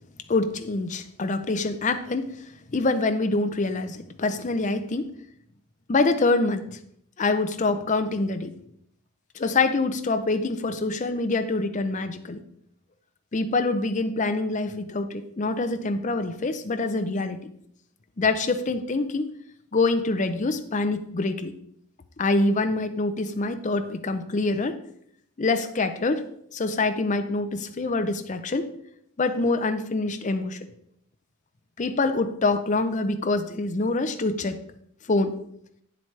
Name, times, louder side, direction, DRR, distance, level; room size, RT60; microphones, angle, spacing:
voice 1, 0.3-2.4 2.7-5.1 5.9-6.8 7.2-8.5 9.3-12.4 13.3-17.5 18.2-19.3 19.7-21.5 22.2-24.8 25.4-26.2 26.5-28.7 29.2-30.6 31.8-34.6 35.1-35.4, left 3 dB, 35° left, 8 dB, 0.5 m, -25 dB
8.6 x 7.7 x 3.2 m, 0.71 s
head